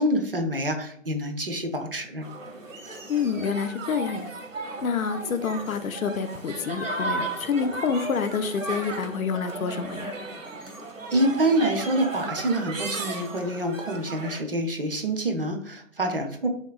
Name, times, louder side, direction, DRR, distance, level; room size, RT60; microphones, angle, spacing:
voice 1, 0.0-2.3 10.6-10.7 11.1-16.5, right 1 dB, 45° right, 4 dB, 0.5 m, -26 dB
sound 1, 2.2-14.4, right 3 dB, 70° right, 0.9 m, -35 dB
voice 2, 3.1-4.3 4.8-10.1, left 6 dB, 90° left, 10 dB, 0.5 m, -28 dB
3.4 x 2.9 x 2.3 m, 0.65 s
figure-of-eight pair, 155°, 40 cm